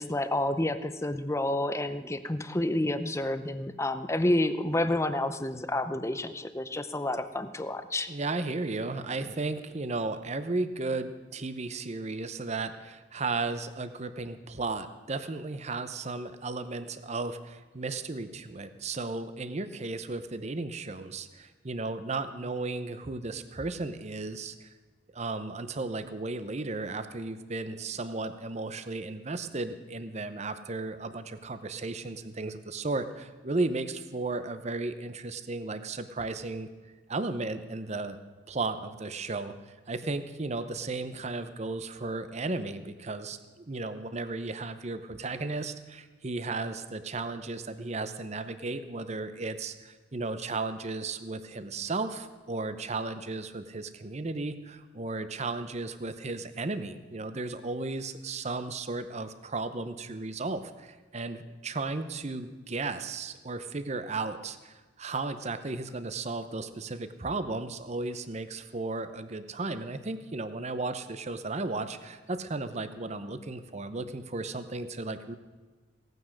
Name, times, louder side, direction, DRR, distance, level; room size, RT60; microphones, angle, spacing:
voice 1, 0.0-8.1, left 1 dB, 15° left, 11 dB, 0.7 m, -29 dB
voice 2, 8.1-24.7 25.1-36.7 37.1-38.2 38.5-39.5 39.9-43.4 43.7-75.4, right 3 dB, 35° right, 11 dB, 0.8 m, -34 dB
17.5 x 9.3 x 6.4 m, 1.3 s
head